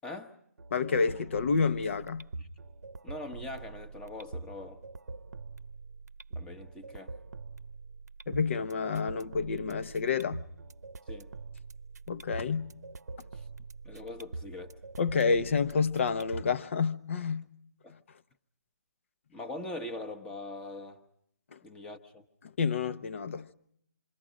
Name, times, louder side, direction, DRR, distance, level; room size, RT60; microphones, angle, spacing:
voice 1, 0.0-0.3 2.4-2.5 3.0-4.8 6.3-7.1 11.1-11.3 13.3-13.5 13.8-14.8 17.8-17.9 19.3-21.0 21.6-22.3, left 2 dB, 10° left, 1.1 m, -42 dB
sound 1, 0.6-16.6, right 3 dB, 70° right, 0.8 m, -44 dB
voice 2, 0.7-2.3 8.3-10.5 12.1-12.8 15.0-17.5 21.5-21.6 22.6-23.5, left 5 dB, 45° left, 1.0 m, -29 dB
27.0 x 22.5 x 5.1 m
figure-of-eight pair, 155°, 9 cm